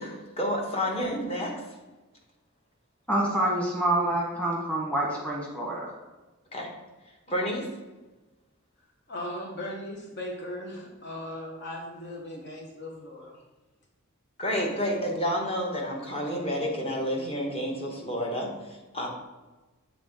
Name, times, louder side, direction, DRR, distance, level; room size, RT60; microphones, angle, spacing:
voice 1, 0.0-1.5 6.5-6.7 7.3-7.7 14.4-18.5 18.9-19.1, equal, 30° left, 0 dB, 1.1 m, -29 dB
voice 2, 3.1-5.9, right 1 dB, 5° left, -3 dB, 1.3 m, -27 dB
voice 3, 9.1-13.4, left 1 dB, 55° left, 0 dB, 1.0 m, -38 dB
7.4 x 3.5 x 3.7 m, 1.2 s
head